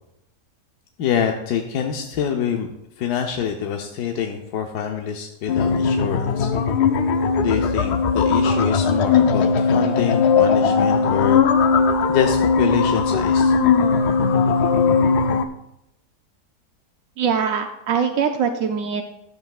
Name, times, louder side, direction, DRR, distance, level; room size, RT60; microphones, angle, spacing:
voice 1, 1.0-2.7 3.0-6.5 7.4-11.4 12.1-13.6, left 8 dB, 85° left, 3 dB, 1.2 m, -25 dB
sound 1, 5.5-15.5, left 5 dB, 70° left, 0.6 m, -18 dB
voice 2, 17.2-19.0, right 6 dB, 70° right, 4 dB, 0.9 m, -22 dB
12.0 x 7.8 x 2.4 m, 0.85 s
omnidirectional pair, 1.7 m